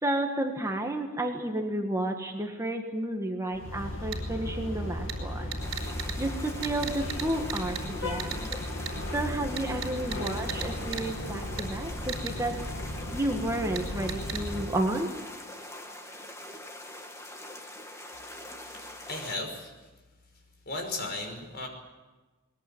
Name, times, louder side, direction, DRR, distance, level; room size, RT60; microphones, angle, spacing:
voice 1, 0.0-5.5 5.8-8.5 9.1-12.6 13.1-15.1, right 1 dB, 15° right, 3 dB, 1.8 m, -31 dB
sound 1, 3.5-14.8, left 1 dB, 65° left, 2.4 m, -36 dB
sound 2, 4.1-4.2 5.1-5.2 5.5-6.1 6.6-7.2 7.5-7.8 8.2-8.6 8.9-9.0 9.6-10.7 10.9-11.0 11.6-11.7 12.1-12.3 13.8-13.9 14.1-14.4, right 9 dB, 65° right, 4.4 m, -35 dB
sound 3, 5.6-19.4, left 1 dB, 15° left, 2.1 m, -43 dB
voice 2, 18.7-19.7 20.7-21.7, left 2 dB, 50° left, 4 dB, 5.7 m, -36 dB
21.0 x 21.0 x 8.8 m, 1.2 s
head